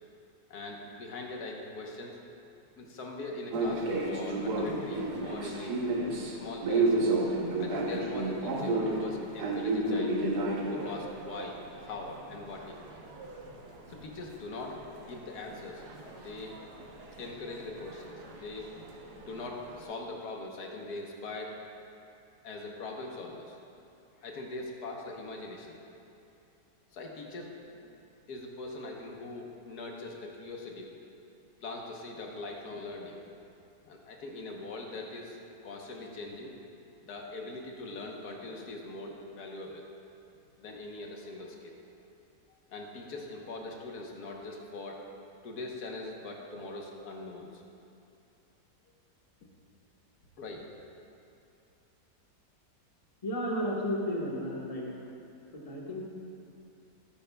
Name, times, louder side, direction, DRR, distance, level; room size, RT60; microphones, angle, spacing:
voice 1, 0.5-2.1 2.8-5.8 6.3-7.2 7.6-10.2 10.7-12.8 13.9-15.8 16.1-16.5 17.2-18.7 19.2-21.6 22.4-23.6 24.2-25.8 26.9-28.0 28.3-30.9 31.6-33.2 33.9-35.4 35.6-36.5 37.0-39.8 40.6-41.8 42.7-45.0 45.4-47.6 50.4-50.7, left 2 dB, 70° left, 0 dB, 1.6 m, -41 dB
sound 1, 3.5-14.4 14.6-19.8, right 2 dB, 75° right, 1.6 m, -33 dB
voice 2, 53.2-55.0 55.5-56.1, equal, 25° left, -3 dB, 1.2 m, -33 dB
14.0 x 11.0 x 2.3 m, 2.6 s
omnidirectional pair, 1.8 m